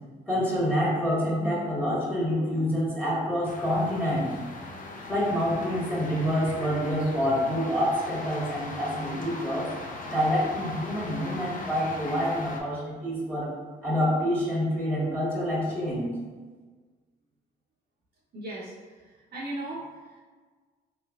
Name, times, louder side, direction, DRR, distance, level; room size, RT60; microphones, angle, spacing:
voice 1, 0.3-4.3 5.1-9.7 10.1-13.5 13.8-16.1, equal, 5° left, -7 dB, 1.4 m, -27 dB
sound 1, 3.4-12.6, left 2 dB, 40° left, 0.6 m, -40 dB
voice 2, 18.3-20.2, right 1 dB, 50° right, -9 dB, 0.8 m, -38 dB
3.3 x 3.1 x 2.3 m, 1.4 s
supercardioid pair, 60°, 21 cm